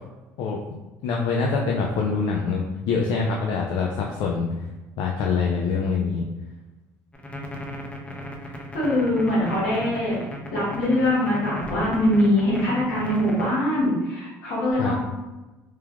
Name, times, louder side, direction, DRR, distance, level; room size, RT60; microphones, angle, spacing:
voice 1, 1.0-4.5 5.0-6.2 14.8-14.9, left 5 dB, 70° left, -1 dB, 0.3 m, -24 dB
sound 1, 7.1-13.5, left 1 dB, 15° left, 0.5 m, -36 dB
voice 2, 8.7-10.2 10.5-14.9, left 1 dB, 90° left, -7 dB, 1.3 m, -22 dB
3.1 x 2.2 x 2.3 m, 1.1 s
supercardioid pair, 75°, 8 cm